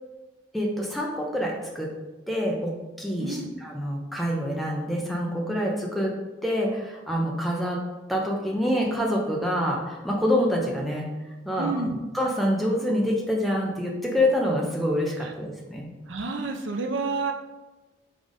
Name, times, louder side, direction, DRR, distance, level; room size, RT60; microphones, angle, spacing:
voice 1, 0.5-1.9 2.3-6.1 6.4-7.8 8.1-11.1 11.4-11.7 12.1-15.9, equal, ahead, -1 dB, 0.6 m, -26 dB
voice 2, 11.6-12.0 15.2-15.3 16.1-17.3, right 3 dB, 75° right, 4 dB, 0.5 m, -29 dB
3.8 x 3.5 x 3.6 m, 1.2 s
head